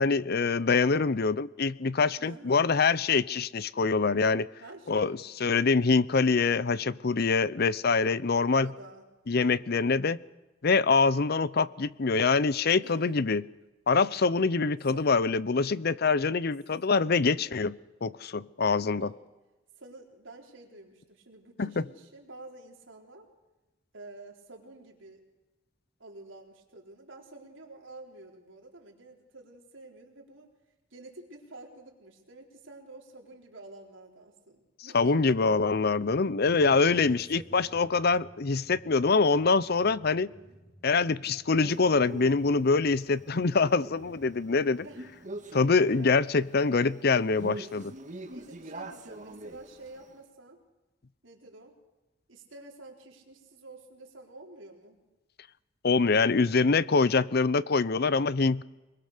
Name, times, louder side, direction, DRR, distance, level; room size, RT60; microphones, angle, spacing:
voice 1, 0.0-4.5 4.9-8.7 9.3-10.2 10.6-13.4 13.9-19.1 21.6-21.8 34.9-40.3 40.8-44.8 45.5-47.9 55.8-58.6, left 4 dB, 55° left, 18 dB, 0.7 m, -25 dB
voice 2, 2.2-2.7 4.6-5.4 8.3-9.1 12.8-13.2 14.9-15.3 18.9-19.2 19.8-23.3 23.9-25.2 26.0-30.5 30.9-35.4 36.9-37.8 40.0-40.6 44.8-45.1 46.0-46.6 48.3-50.6 51.2-51.8 52.3-55.0, right 2 dB, 90° right, 1 dB, 4.1 m, -49 dB
sound 1, 35.3-45.5, equal, 35° left, 3.1 m, -55 dB
Male speech man speaking, 41.6-50.1, right 1 dB, 40° right, 1.8 m, -44 dB
24.5 x 22.0 x 6.7 m, 1.1 s
head